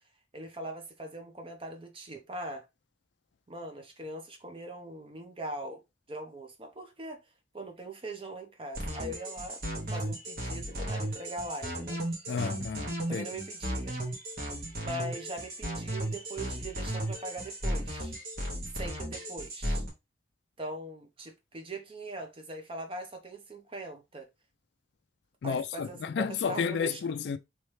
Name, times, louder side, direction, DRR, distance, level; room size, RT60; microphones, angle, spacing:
voice 1, 0.3-2.7 3.5-5.8 6.1-7.2 7.5-9.6 9.9-12.0 13.1-13.9 14.8-18.1 18.7-19.8 20.6-24.3 25.4-27.0, right 1 dB, 30° right, 0.8 m, -41 dB
sound 1, 8.7-19.9, right 1 dB, 55° right, 1.4 m, -35 dB
voice 2, 12.3-13.3 25.4-27.4, left 6 dB, 75° left, 0.4 m, -32 dB
3.2 x 3.1 x 3.2 m
head